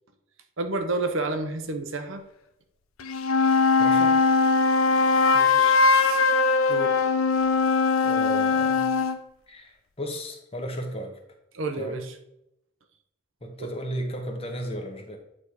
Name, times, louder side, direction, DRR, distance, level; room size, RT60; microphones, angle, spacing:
voice 1, 0.6-2.2 5.3-5.8 6.7-7.0 11.5-12.1 13.6-13.7, right 2 dB, 65° right, 7 dB, 1.0 m, -30 dB
sound 1, 3.0-9.2, left 4 dB, 80° left, 0.7 m, -21 dB
voice 2, 3.8-4.2 8.0-8.9 9.5-11.1 11.8-12.0 13.4-15.2, equal, 25° left, 3 dB, 1.2 m, -34 dB
8.8 x 4.2 x 4.8 m, 0.81 s
head